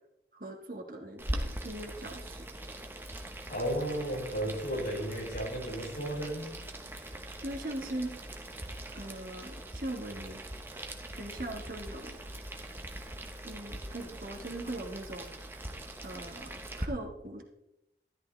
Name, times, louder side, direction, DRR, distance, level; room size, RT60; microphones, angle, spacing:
voice 1, 0.3-2.5 7.4-8.1 8.9-10.4 11.0-12.2 13.4-15.3 16.0-17.4, right 1 dB, 50° right, 3 dB, 1.5 m, -40 dB
Boiling, 1.2-16.9, right 1 dB, 15° right, 1.0 m, -42 dB
voice 2, 3.5-6.5, right 1 dB, 60° left, -3 dB, 5.4 m, -34 dB
13.0 x 11.5 x 3.3 m, 0.84 s
head